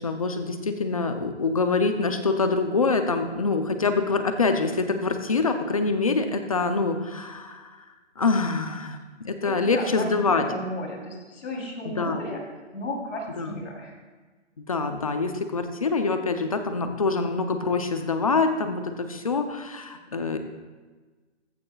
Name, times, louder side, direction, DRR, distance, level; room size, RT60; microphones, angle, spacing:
voice 1, 0.0-7.8 8.2-10.5 11.8-12.2 13.4-13.6 14.6-20.4, left 4 dB, 30° left, 7 dB, 0.6 m, -25 dB
voice 2, 9.4-12.4 12.7-14.0, left 1 dB, 75° left, 0 dB, 3.6 m, -34 dB
14.5 x 12.0 x 2.4 m, 1.3 s
hypercardioid pair, 170°, 36 cm